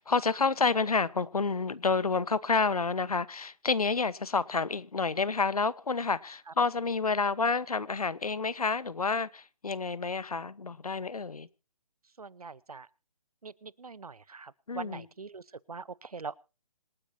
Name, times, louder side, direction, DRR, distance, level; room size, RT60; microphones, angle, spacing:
voice 1, 0.0-11.5 14.7-15.0, left 4 dB, 85° left, 1.1 m, -29 dB
voice 2, 12.2-12.9 13.4-15.4 15.7-16.4, right 4 dB, 85° right, 0.9 m, -43 dB
26.5 x 10.0 x 2.8 m
figure-of-eight pair, 150°, 18 cm